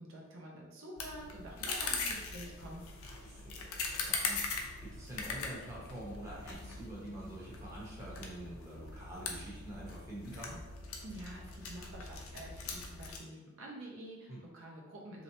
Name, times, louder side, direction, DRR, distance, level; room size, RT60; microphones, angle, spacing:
voice 1, 0.0-2.8 11.0-15.2, right 1 dB, 70° right, -2 dB, 0.6 m, -48 dB
sound 1, 1.0-13.2, left 4 dB, 85° left, 0.5 m, -41 dB
voice 2, 3.0-10.6 14.3-14.4, right 1 dB, 15° right, -6 dB, 0.7 m, -47 dB
3.1 x 2.8 x 2.7 m, 1.1 s
head